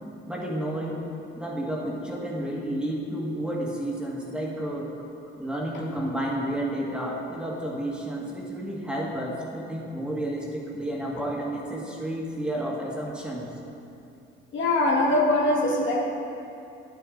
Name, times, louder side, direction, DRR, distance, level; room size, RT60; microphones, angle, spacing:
voice 1, 0.3-1.1 1.4-4.9 5.4-13.5, right 1 dB, 5° right, -3 dB, 1.7 m, -31 dB
voice 2, 14.5-16.0, left 1 dB, 70° left, -1 dB, 1.5 m, -22 dB
9.4 x 9.1 x 3.8 m, 2.7 s
cardioid pair, 90°, 20 cm